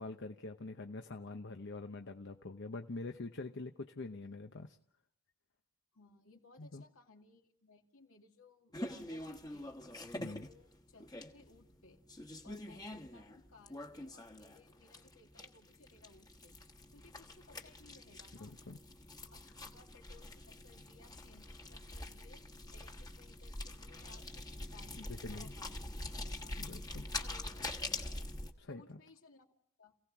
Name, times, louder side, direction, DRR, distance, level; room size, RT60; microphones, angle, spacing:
voice 1, 0.0-4.8 6.6-6.8 10.2-10.5 18.4-18.8 24.9-25.5 26.6-27.1 28.6-29.0, left 3 dB, 60° left, 5 dB, 0.9 m, -45 dB
voice 2, 5.9-9.7 10.1-12.0 12.4-16.6 16.9-18.6 19.2-25.7 26.2-26.6 27.1-28.3 28.7-29.5 29.8-29.9, left 3 dB, 80° left, 2 dB, 2.5 m, -62 dB
sound 1, 8.7-28.5, left 2 dB, 20° left, 1.3 m, -45 dB
28.0 x 16.5 x 6.0 m, 0.76 s
head